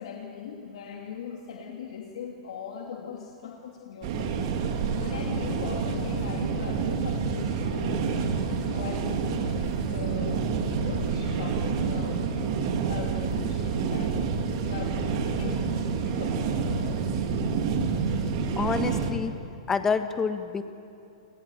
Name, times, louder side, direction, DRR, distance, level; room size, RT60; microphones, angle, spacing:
voice 1, 0.0-17.1, left 7 dB, 75° left, 0 dB, 2.7 m, -40 dB
sound 1, 4.0-19.1, right 5 dB, 50° right, 2.8 m, -28 dB
voice 2, 18.2-19.3 19.7-20.6, left 5 dB, 15° left, 9 dB, 1.4 m, -28 dB
28.0 x 20.0 x 8.8 m, 2.7 s
hypercardioid pair, 150°, 3 cm